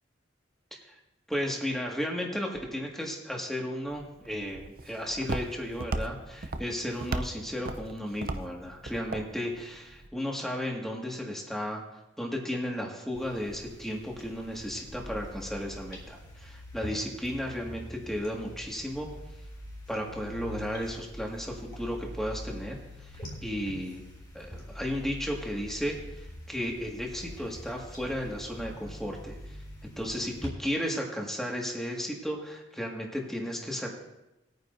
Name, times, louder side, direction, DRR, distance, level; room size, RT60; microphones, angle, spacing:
voice 1, 1.3-11.8 12.2-19.1 19.9-24.0 24.3-29.6 29.8-33.9, equal, ahead, -1 dB, 1.9 m, -34 dB
Walk footsteps, 3.9-10.1, right 2 dB, 50° right, 0.6 m, -37 dB
sound 1, 13.1-30.5, equal, 20° left, 3.4 m, -44 dB
20.0 x 9.3 x 2.7 m, 0.94 s
head